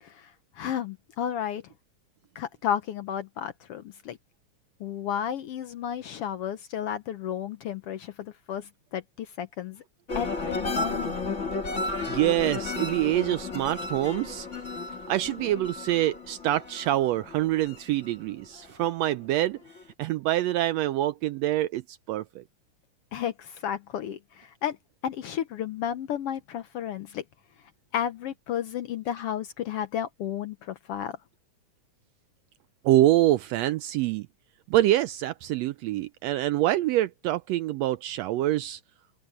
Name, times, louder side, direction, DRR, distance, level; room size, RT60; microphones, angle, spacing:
voice 1, 0.0-1.6 2.3-4.2 4.8-9.8 10.1-11.3 23.1-24.8 25.0-27.2 27.9-31.2, left 9 dB, 70° left, 1.4 m, -32 dB
sound 1, 10.1-18.9 19.3-19.8, left 3 dB, 25° left, 2.1 m, -33 dB
voice 2, 12.1-14.5 15.1-19.6 20.0-22.4 32.8-34.3 34.7-38.8, right 14 dB, 85° right, 1.5 m, -25 dB
omnidirectional pair, 3.5 m